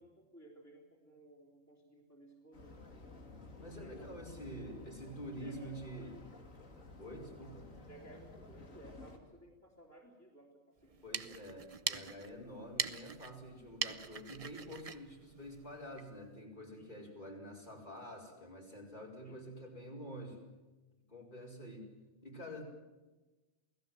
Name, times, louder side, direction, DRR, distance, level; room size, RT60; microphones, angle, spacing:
voice 1, 0.0-3.2 3.7-4.2 5.3-6.1 7.9-11.5 16.7-17.0 19.2-19.4, right 1 dB, 10° left, -1 dB, 3.6 m, -58 dB
sound 1, 2.5-9.2, left 3 dB, 85° left, 3.2 m, -53 dB
voice 2, 3.6-6.2 7.0-7.8 11.0-20.4 21.1-21.9 22.2-22.6, equal, 40° left, -2 dB, 5.2 m, -47 dB
sound 2, 10.8-16.1, right 5 dB, 35° right, 0.8 m, -42 dB
28.5 x 17.5 x 7.8 m, 1.2 s
omnidirectional pair, 1.3 m